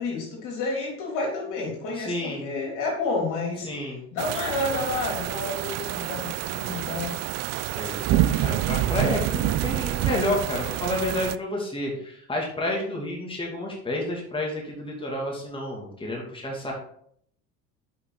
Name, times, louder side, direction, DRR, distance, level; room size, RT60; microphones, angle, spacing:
voice 1, 0.0-3.7 4.1-7.2, left 3 dB, 60° left, -1 dB, 3.4 m, -30 dB
voice 2, 2.0-2.5 3.6-4.0 7.8-16.7, left 1 dB, 15° left, -2 dB, 2.6 m, -30 dB
sound 1, 4.2-11.4, right 14 dB, 50° right, 0.5 m, -27 dB
7.8 x 5.8 x 4.0 m, 0.65 s
hypercardioid pair, 75°, 34 cm